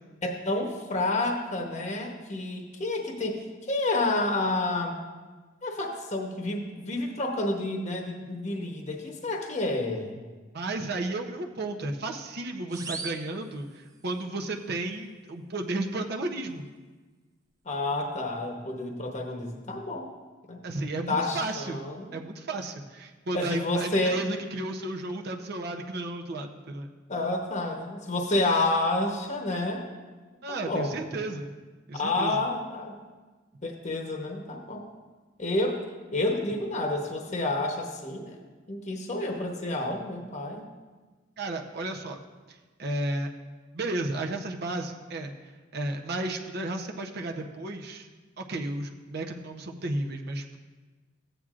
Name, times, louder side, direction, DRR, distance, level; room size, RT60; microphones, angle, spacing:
voice 1, 0.2-4.9 5.6-10.2 17.7-20.1 20.5-20.6 21.1-22.2 23.3-24.2 27.1-29.9 30.7-31.0 31.9-32.9 33.6-34.9 35.4-35.8 36.1-38.4 38.7-40.6, left 2 dB, 35° left, 1 dB, 0.9 m, -29 dB
voice 2, 10.5-16.6 20.6-21.8 22.1-26.9 30.4-31.5 31.9-32.4 41.4-42.2 42.5-43.3 43.7-45.3 45.7-48.1 48.4-50.6, right 2 dB, 55° right, 2 dB, 0.7 m, -33 dB
sound 1, 12.7-14.2, right 4 dB, 20° right, 0.5 m, -41 dB
14.5 x 9.0 x 2.5 m, 1.3 s
head